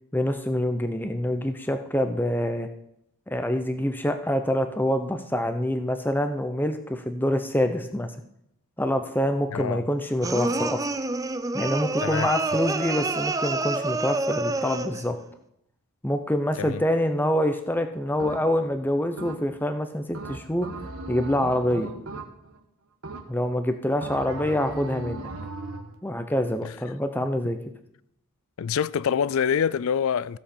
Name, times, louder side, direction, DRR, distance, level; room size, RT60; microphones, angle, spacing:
voice 1, 0.1-2.7 3.3-8.1 8.8-10.8 11.5-15.2 16.0-20.7 21.1-21.9 23.3-25.3 26.0-27.6, left 1 dB, 10° left, 0.7 m, -26 dB
voice 2, 9.5-9.8 12.0-12.3 16.6-16.8 27.2-27.3 28.6-30.4, left 7 dB, 70° left, 0.4 m, -26 dB
sound 1, 10.2-15.1, right 2 dB, 15° right, 0.3 m, -28 dB
sound 2, 18.2-18.7 19.2-19.7 20.1-22.6 23.0-23.6 24.0-25.9, right 2 dB, 70° right, 1.3 m, -37 dB
15.5 x 7.4 x 4.4 m
head